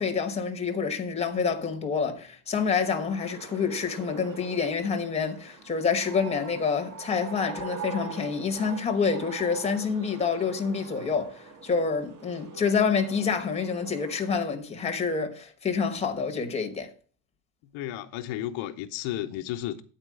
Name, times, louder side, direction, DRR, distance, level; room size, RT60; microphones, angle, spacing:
voice 1, 0.0-16.9, left 5 dB, 15° left, 1.1 m, -27 dB
sound 1, 2.5-14.3, right 4 dB, 45° right, 1.5 m, -43 dB
voice 2, 17.6-19.8, left 13 dB, 80° left, 1.0 m, -33 dB
9.1 x 4.4 x 7.4 m
cardioid pair, 170°, 46 cm